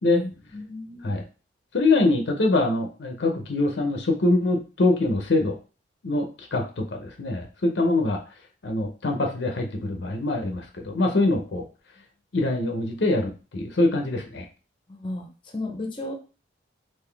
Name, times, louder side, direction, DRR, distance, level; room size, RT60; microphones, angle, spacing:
voice 1, 0.0-1.2 14.9-16.1, left 2 dB, 25° left, 2 dB, 0.7 m, -34 dB
voice 2, 1.7-5.6 6.0-8.2 8.6-11.6 12.3-14.5, left 2 dB, 70° left, 3 dB, 0.6 m, -24 dB
3.8 x 2.6 x 3.3 m, 0.34 s
head